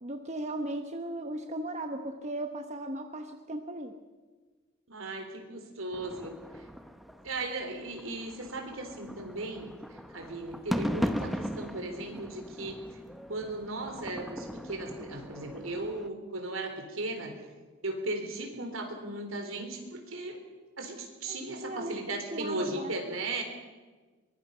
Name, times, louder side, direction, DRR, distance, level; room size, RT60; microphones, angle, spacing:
voice 1, 0.0-3.9 21.3-22.9, right 1 dB, 35° right, 5 dB, 1.2 m, -37 dB
voice 2, 4.9-6.7 7.2-13.0 13.3-17.4 17.8-20.4 20.8-23.4, right 2 dB, 75° right, 4 dB, 3.9 m, -37 dB
sound 1, 5.9-16.1, equal, ahead, 0.9 m, -38 dB
23.5 x 21.5 x 5.7 m, 1.3 s
head